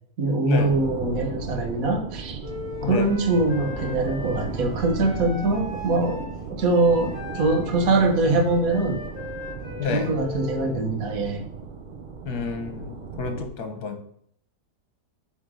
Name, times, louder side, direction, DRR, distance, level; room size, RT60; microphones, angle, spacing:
voice 1, 0.2-2.4 2.9-9.0 9.9-11.4, right 2 dB, 65° right, 3 dB, 1.5 m, -23 dB
sound 1, 0.6-13.5, right 4 dB, 40° right, 0.7 m, -35 dB
Wind instrument woodwind instrument, 2.4-10.7, left 3 dB, 40° left, 2.7 m, -39 dB
voice 2, 2.8-3.1 9.8-10.1 12.3-14.0, left 5 dB, 75° left, 6 dB, 1.7 m, -30 dB
8.2 x 3.5 x 6.3 m, 0.64 s
omnidirectional pair, 1.7 m